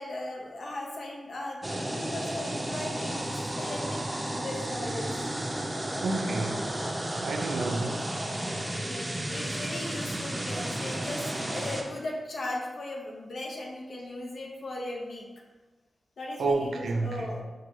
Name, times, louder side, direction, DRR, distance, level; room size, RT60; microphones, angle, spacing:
voice 1, 0.0-5.1 7.8-7.9 8.6-15.3 16.2-17.4, left 1 dB, 75° left, -2 dB, 0.7 m, -38 dB
sound 1, 1.6-11.8, right 1 dB, 20° right, 0.5 m, -33 dB
voice 2, 6.0-6.6 7.2-8.1 16.4-17.4, right 3 dB, 90° right, 3 dB, 0.4 m, -30 dB
6.2 x 2.3 x 3.0 m, 1.2 s
cardioid pair, 70°, 0 cm